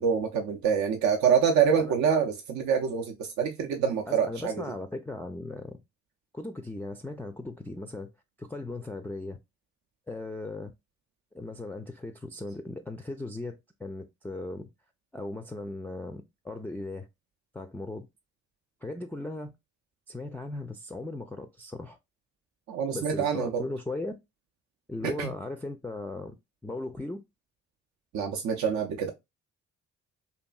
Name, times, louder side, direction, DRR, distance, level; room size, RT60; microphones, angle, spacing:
voice 1, 0.0-4.5 22.7-23.6 25.0-25.3 28.1-29.1, right 7 dB, 60° right, 0.5 m, -26 dB
voice 2, 4.1-5.8 6.3-8.1 8.4-9.4 10.1-10.7 11.3-14.7 15.1-17.1 17.5-18.1 18.8-19.5 20.1-22.0 22.9-24.1 24.9-26.4 26.6-27.2, left 2 dB, 5° left, 0.4 m, -37 dB
2.6 x 2.6 x 2.2 m
hypercardioid pair, 50°, 33 cm